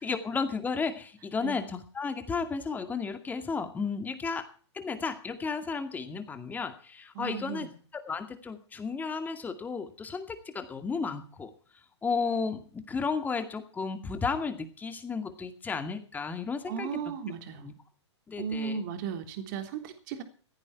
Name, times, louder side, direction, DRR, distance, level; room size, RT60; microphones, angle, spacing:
voice 1, 0.0-4.5 4.7-7.7 7.9-11.5 12.0-17.0 17.6-17.7 18.3-18.8, left 5 dB, 10° left, 9 dB, 2.2 m, -33 dB
voice 2, 7.1-7.7 16.6-17.6 18.4-20.2, right 6 dB, 40° right, 7 dB, 3.3 m, -35 dB
16.0 x 14.0 x 4.6 m, 0.42 s
figure-of-eight pair, 115°, 15 cm